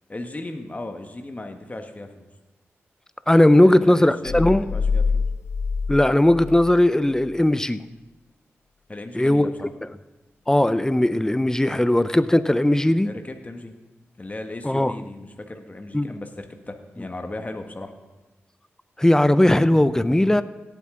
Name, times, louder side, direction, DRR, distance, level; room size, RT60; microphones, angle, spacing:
voice 1, 0.1-2.3 3.6-5.2 8.9-9.7 13.0-13.7 14.2-17.9, left 2 dB, 30° left, 5 dB, 1.4 m, -36 dB
voice 2, 3.3-4.6 5.9-7.8 9.1-9.5 10.5-13.1 14.6-14.9 15.9-16.1 19.0-20.4, left 1 dB, 10° left, 14 dB, 0.6 m, -18 dB
sound 1, 4.3-6.8 7.2-7.3, left 5 dB, 65° left, 0.4 m, -25 dB
17.5 x 8.2 x 3.8 m, 1.1 s
cardioid pair, 45°, 5 cm